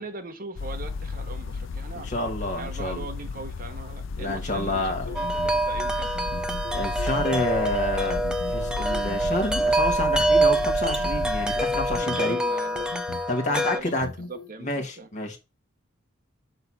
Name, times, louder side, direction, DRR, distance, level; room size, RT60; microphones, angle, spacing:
voice 1, 0.0-2.1 2.5-6.1 11.7-12.9 13.5-15.1, right 3 dB, 45° right, 1.0 m, -40 dB
sound 1, 0.6-12.0, left 4 dB, 65° left, 0.4 m, -34 dB
voice 2, 2.0-3.1 4.2-5.1 6.7-8.2 8.5-12.4 13.3-14.1 14.6-15.4, left 1 dB, 35° left, 1.5 m, -28 dB
sound 2, 4.6-5.6 6.1-7.4 8.1-9.4 10.0-11.4 11.9-13.3 13.8-14.5, left 3 dB, 80° left, 0.9 m, -39 dB
Wind chime, 5.1-13.8, right 1 dB, 5° right, 0.4 m, -25 dB
5.6 x 4.0 x 6.0 m
head